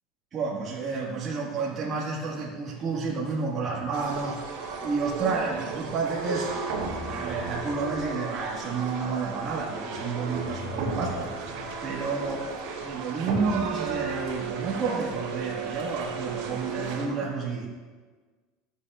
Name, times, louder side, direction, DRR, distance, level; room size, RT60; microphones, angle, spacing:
voice 1, 0.3-6.6 7.0-11.3 11.8-12.4 12.8-17.7, right 4 dB, 30° right, -6 dB, 1.6 m, -30 dB
sound 1, 3.9-17.1, right 4 dB, 70° right, 2.3 m, -34 dB
14.0 x 8.1 x 2.4 m, 1.4 s
supercardioid pair, 145°, 0 cm